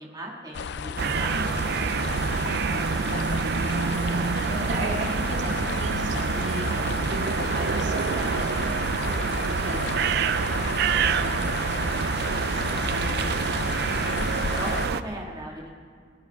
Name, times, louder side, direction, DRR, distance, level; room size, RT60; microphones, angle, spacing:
voice 1, 0.0-2.0 14.2-15.7, right 1 dB, 20° right, -2 dB, 1.7 m, -38 dB
sound 1, 0.5-14.9, left 6 dB, 65° left, 0.4 m, -33 dB
sound 2, 1.0-15.0, right 5 dB, 60° right, 0.5 m, -27 dB
voice 2, 4.1-14.0, right 1 dB, 80° right, -1 dB, 2.1 m, -37 dB
19.0 x 11.0 x 4.6 m, 2.1 s
head